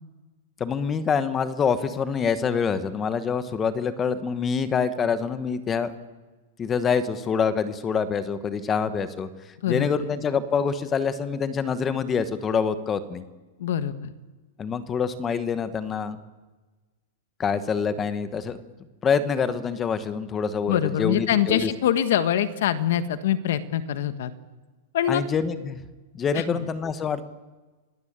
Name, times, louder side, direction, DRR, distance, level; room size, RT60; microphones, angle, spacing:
voice 1, 0.6-5.9 6.6-9.3 9.7-13.2 14.6-16.2 17.4-18.6 19.0-21.7 25.1-25.8 26.1-27.2, left 6 dB, 15° left, 13 dB, 1.1 m, -26 dB
voice 2, 13.6-14.1 20.7-24.3 24.9-25.2 26.3-26.6, left 10 dB, 55° left, 12 dB, 1.5 m, -24 dB
28.0 x 18.0 x 8.8 m, 1.3 s
supercardioid pair, 175°, 0 cm